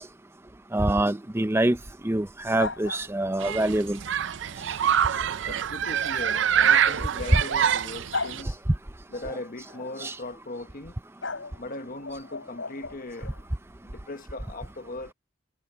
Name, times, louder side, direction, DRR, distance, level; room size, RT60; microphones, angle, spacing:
voice 1, 0.7-1.8 2.0-4.0 10.0-10.1, right 1 dB, 15° right, 0.6 m, -25 dB
sound 1, 2.6-3.5 6.7-7.7 8.1-8.4 9.7-9.9 11.2-13.4, left 3 dB, 80° left, 5.3 m, -36 dB
Human group actions, 3.4-8.4, right 9 dB, 65° right, 0.5 m, -25 dB
voice 2, 5.4-8.6 9.1-10.9 11.6-13.3 13.9-15.1, left 2 dB, 45° left, 1.2 m, -38 dB
head